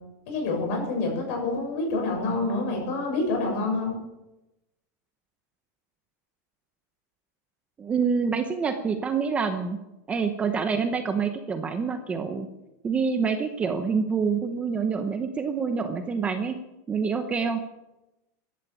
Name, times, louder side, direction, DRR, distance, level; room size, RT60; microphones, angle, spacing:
voice 1, 0.3-4.0, left 3 dB, 50° left, 1 dB, 7.2 m, -27 dB
voice 2, 7.8-9.8 10.1-12.5 12.8-16.6 16.9-17.6, right 5 dB, 15° right, 7 dB, 0.8 m, -26 dB
15.5 x 12.0 x 7.3 m, 0.95 s
supercardioid pair, 175°, 10 cm